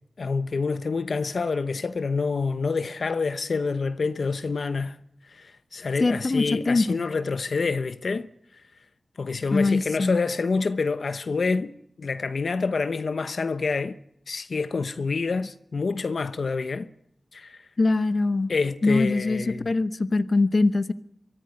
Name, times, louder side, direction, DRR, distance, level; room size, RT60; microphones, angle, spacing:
voice 1, 0.2-5.0 5.2-8.6 9.2-11.7 12.0-14.0 14.3-16.9 17.3-17.6 18.5-19.7, left 4 dB, 75° left, 1.0 m, -27 dB
voice 2, 6.0-7.0 9.5-10.2 17.8-18.5 18.8-20.9, left 3 dB, 50° left, 1.1 m, -22 dB
24.0 x 15.0 x 9.6 m
wide cardioid pair, 85°, 0 cm